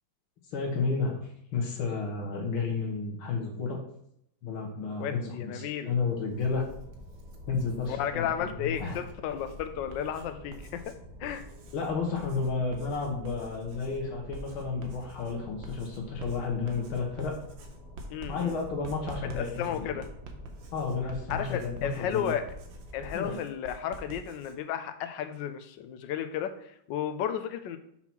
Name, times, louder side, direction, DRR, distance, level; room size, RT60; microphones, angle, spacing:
voice 1, 0.5-1.2 1.5-3.8 4.4-6.7 7.5-9.0 11.7-17.4 18.3-19.9 20.7-22.3 23.1-23.4, left 4 dB, 90° left, 0 dB, 2.1 m, -32 dB
voice 2, 5.0-5.9 7.9-10.8 11.2-11.4 18.1-18.6 19.3-20.1 21.3-22.4 22.9-27.8, left 9 dB, 70° left, 9 dB, 1.3 m, -33 dB
sound 1, 6.3-23.3, left 1 dB, 35° right, 1.6 m, -47 dB
Writing, 6.3-7.9 8.6-24.6, right 2 dB, 70° right, 1.6 m, -48 dB
5.8 x 4.3 x 5.9 m, 0.74 s
omnidirectional pair, 2.2 m